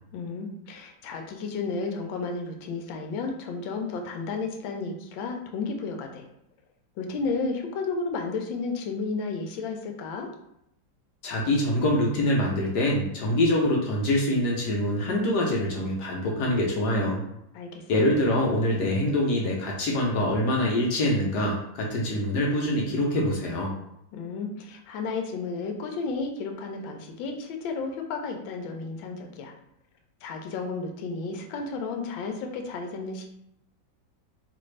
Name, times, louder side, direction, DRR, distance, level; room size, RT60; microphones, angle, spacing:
voice 1, 0.1-6.3 7.0-10.3 17.5-18.0 24.1-29.5 30.2-33.3, left 4 dB, 85° left, 3 dB, 1.3 m, -32 dB
voice 2, 11.2-17.2 17.9-23.7, left 1 dB, 65° left, -2 dB, 1.2 m, -25 dB
4.0 x 2.5 x 3.2 m, 0.77 s
omnidirectional pair, 2.1 m